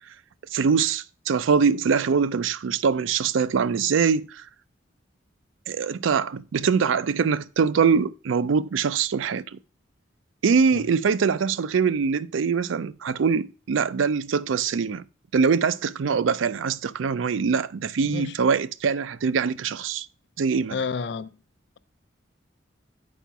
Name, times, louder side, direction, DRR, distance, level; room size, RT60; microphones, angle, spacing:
voice 1, 0.5-4.5 5.7-9.6 10.4-15.0 15.3-20.1 20.4-20.8, right 6 dB, 85° right, 0.4 m, -23 dB
voice 2, 20.7-21.3, left 5 dB, 65° left, 0.4 m, -29 dB
9.1 x 4.3 x 4.5 m
head